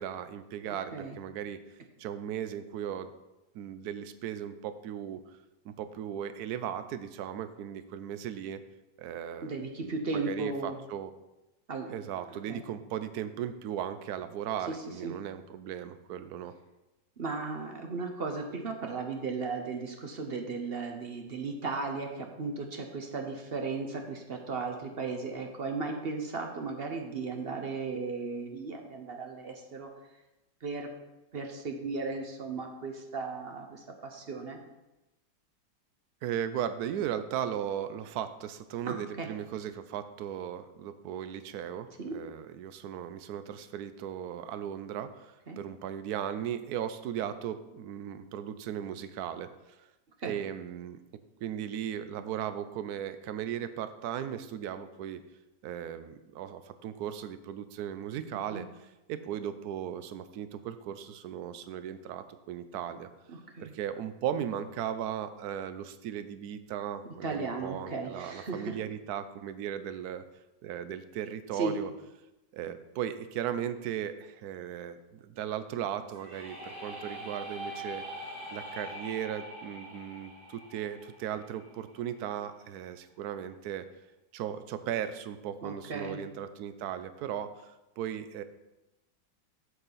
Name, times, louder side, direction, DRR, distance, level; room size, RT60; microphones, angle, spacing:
voice 1, 0.0-1.6 2.0-3.1 3.5-5.2 5.6-8.6 9.0-9.5 9.8-11.1 11.9-16.5 36.2-49.9 50.2-51.0 51.4-55.2 55.6-63.1 63.6-70.2 70.6-71.9 72.5-78.0 78.5-83.9 84.3-88.4, right 9 dB, 70° right, 12 dB, 1.0 m, -37 dB
voice 2, 9.4-10.8 11.7-11.9 12.5-12.6 15.0-15.1 17.2-29.9 30.6-30.9 31.3-34.6 38.9-39.3 42.0-42.1 45.5-45.6 50.2-50.3 58.5-58.6 63.6-63.7 67.2-68.7 71.6-71.7 85.6-86.2, right 4 dB, 45° right, 3 dB, 0.8 m, -36 dB
sound 1, 76.1-82.0, right 1 dB, 30° right, 2.9 m, -43 dB
8.0 x 7.3 x 4.0 m, 0.99 s
omnidirectional pair, 1.9 m